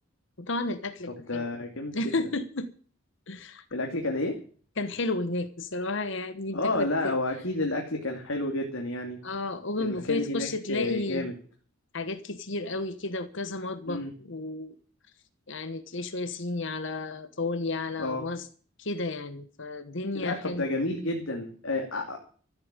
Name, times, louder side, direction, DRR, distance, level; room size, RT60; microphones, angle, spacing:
voice 1, 0.4-1.6 1.9-2.7 3.3-3.6 4.8-7.1 9.2-11.3 11.9-14.7 15.5-18.4 18.8-20.7, left 2 dB, 65° left, 1.2 m, -32 dB
voice 2, 1.3-2.1 3.7-4.4 6.5-9.2 9.8-11.3 13.9-14.1 18.0-18.2 20.1-22.2, left 2 dB, 85° left, 2.8 m, -30 dB
14.0 x 8.8 x 9.0 m
head